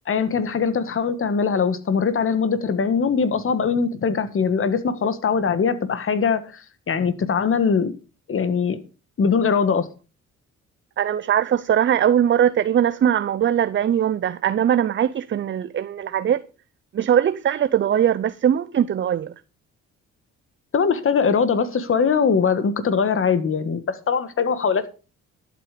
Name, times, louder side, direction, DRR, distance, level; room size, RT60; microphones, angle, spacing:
voice 1, 0.1-7.9 8.3-8.8 9.2-9.9 20.7-24.9, left 6 dB, 45° left, 1.7 m, -21 dB
voice 2, 11.0-16.4 16.9-19.3, right 9 dB, 40° right, 0.6 m, -20 dB
12.0 x 8.0 x 5.1 m
cardioid pair, 90°, 30 cm